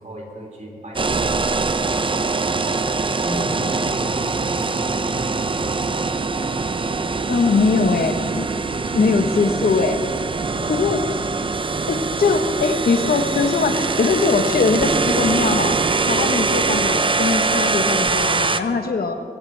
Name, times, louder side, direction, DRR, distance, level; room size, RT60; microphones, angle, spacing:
voice 1, 0.0-6.0 10.3-11.0, right 1 dB, 50° right, -1 dB, 3.9 m, -35 dB
sound 1, 1.0-18.6, right 4 dB, 35° right, 0.6 m, -23 dB
voice 2, 7.3-8.5 8.9-10.0 10.7-11.0 11.9-15.8 16.0-19.1, left 4 dB, 70° left, 7 dB, 1.1 m, -21 dB
22.5 x 15.5 x 3.3 m, 2.4 s
wide cardioid pair, 95°, 16 cm